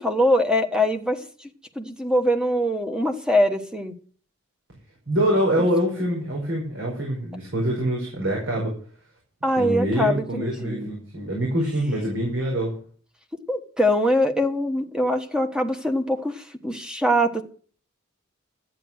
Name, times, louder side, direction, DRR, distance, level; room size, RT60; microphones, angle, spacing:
voice 1, 0.0-1.5 1.7-3.9 9.4-10.9 13.5-17.4, equal, 5° right, 6 dB, 1.2 m, -23 dB
voice 2, 5.1-8.7 9.5-12.8, right 1 dB, 60° right, -2 dB, 5.2 m, -25 dB
12.5 x 9.3 x 6.3 m, 0.43 s
head